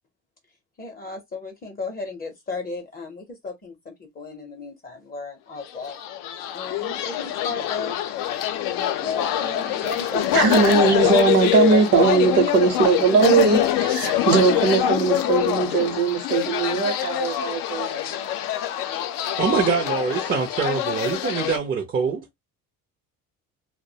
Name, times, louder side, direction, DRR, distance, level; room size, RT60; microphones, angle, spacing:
voice 1, 0.8-6.0 6.5-7.9 9.0-10.3, left 4 dB, 30° left, 0.5 m, -35 dB
sound 1, 5.8-21.6, left 11 dB, 80° left, 0.5 m, -24 dB
voice 2, 9.8-18.2, right 5 dB, 60° right, 0.7 m, -20 dB
voice 3, 19.4-22.2, right 5 dB, 30° right, 0.4 m, -24 dB
2.3 x 2.0 x 2.6 m
cardioid pair, 150°, 32 cm